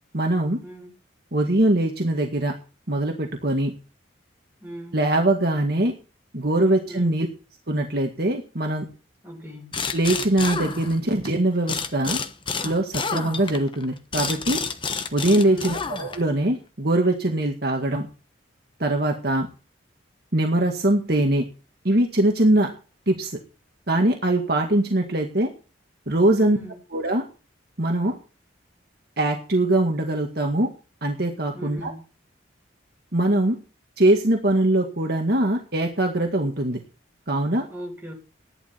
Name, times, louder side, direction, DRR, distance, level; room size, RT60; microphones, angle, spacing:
voice 1, 0.1-0.6 1.3-2.5 2.9-3.7 4.9-5.9 6.3-7.3 7.7-8.9 9.9-12.2 12.6-14.6 15.1-18.1 18.8-19.5 20.3-21.4 21.8-22.7 23.1-23.3 23.9-25.5 26.1-26.6 26.9-27.2 27.8-28.2 29.2-30.7 31.0-31.9 33.1-33.6 34.0-36.8 37.3-37.7, right 1 dB, 55° right, 2 dB, 1.9 m, -22 dB
voice 2, 4.6-5.0 6.9-7.2 9.2-9.8 15.4-15.7 26.3-26.8 31.5-32.0 37.7-38.1, equal, 10° right, -1 dB, 7.5 m, -39 dB
sound 1, 9.7-11.3 11.7-16.4, left 5 dB, 25° left, 1.1 m, -30 dB
14.5 x 11.0 x 4.4 m, 0.35 s
head